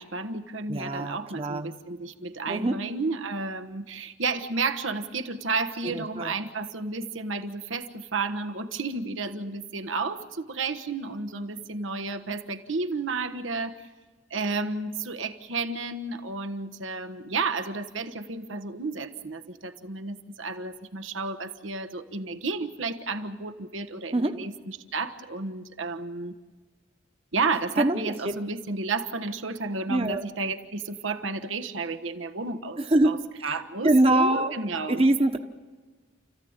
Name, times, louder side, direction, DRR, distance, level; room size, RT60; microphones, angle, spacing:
voice 1, 0.0-13.8 14.3-26.3 27.3-33.2 33.4-35.0, right 3 dB, 85° right, 7 dB, 1.3 m, -32 dB
voice 2, 0.7-1.7 2.5-2.8 5.9-6.3 24.1-24.4 27.8-28.4 29.9-30.2 32.8-33.2 33.5-34.5 34.9-35.4, right 1 dB, 30° right, 6 dB, 1.1 m, -24 dB
29.5 x 15.0 x 8.9 m, 1.4 s
head